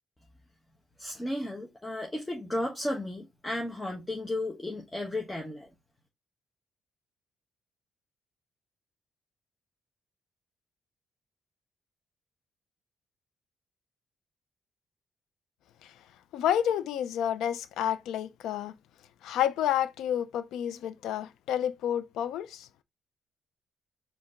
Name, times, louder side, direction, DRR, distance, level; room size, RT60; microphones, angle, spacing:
voice 1, 1.0-5.7, left 1 dB, 15° left, 1.1 m, -34 dB
voice 2, 16.3-18.7 19.2-22.7, left 10 dB, 85° left, 0.5 m, -29 dB
4.4 x 2.7 x 3.7 m
cardioid pair, 90°, 0 cm